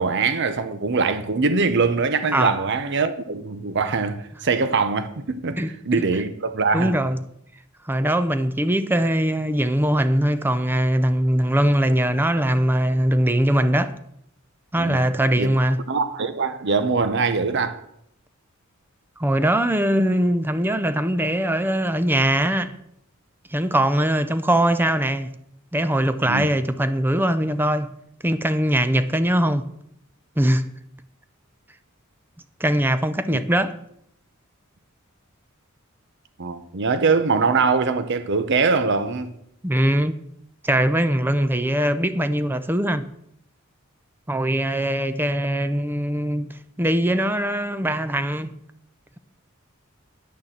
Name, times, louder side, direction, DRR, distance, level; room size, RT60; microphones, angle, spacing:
voice 1, 0.0-5.6 5.8-7.0 14.8-15.0 15.4-15.5 15.9-17.8 26.2-26.5 33.3-33.4 36.4-39.3, right 4 dB, 55° right, 0.8 m, -22 dB
voice 2, 5.6-6.0 6.7-7.2 7.8-14.0 14.7-15.8 19.2-22.7 23.5-25.3 25.7-27.9 28.2-29.7 30.4-30.6 32.6-33.8 39.6-40.2 40.6-43.0 44.3-48.5, right 1 dB, 10° right, 0.5 m, -21 dB
9.4 x 6.7 x 7.3 m
head